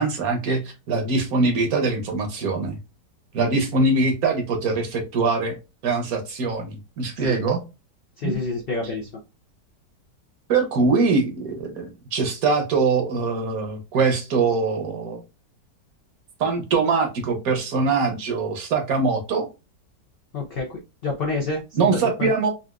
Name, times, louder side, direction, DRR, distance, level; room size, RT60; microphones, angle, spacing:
voice 1, 0.0-2.8 3.3-5.6 5.8-7.6 8.2-8.3 10.5-15.2 16.4-19.5 21.7-22.5, right 4 dB, 65° right, 4 dB, 1.1 m, -23 dB
voice 2, 8.2-9.1 20.3-20.7 21.0-22.3, left 3 dB, 75° left, 0 dB, 0.5 m, -28 dB
4.0 x 2.5 x 2.3 m, 0.27 s
omnidirectional pair, 1.9 m